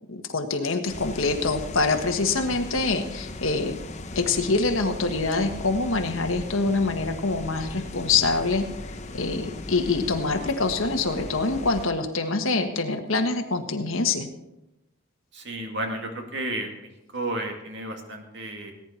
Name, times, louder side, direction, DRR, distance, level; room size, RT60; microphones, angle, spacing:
voice 1, 0.1-3.8 4.1-8.7 9.1-14.3, left 3 dB, 65° left, 4 dB, 1.6 m, -25 dB
sound 1, 0.9-11.9, left 2 dB, 30° left, 0.9 m, -38 dB
voice 2, 15.3-18.7, right 1 dB, 55° right, 3 dB, 2.2 m, -32 dB
19.0 x 9.9 x 4.4 m, 0.92 s
head